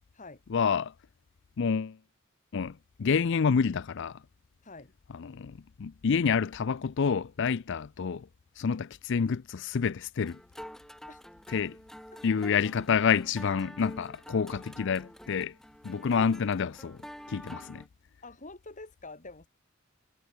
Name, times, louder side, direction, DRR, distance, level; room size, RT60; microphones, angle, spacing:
voice 1, 0.5-0.9 1.6-2.0 2.5-4.2 5.1-8.3 8.6-10.4 11.5-11.8 12.2-15.5 15.8-17.0 17.3-17.8, left 6 dB, 60° left, 0.5 m, -28 dB
voice 2, 4.6-4.9 11.1-11.2 18.2-19.5, left 3 dB, 35° left, 2.7 m, -46 dB
sound 1, 10.2-17.9, equal, ahead, 5.5 m, -47 dB
head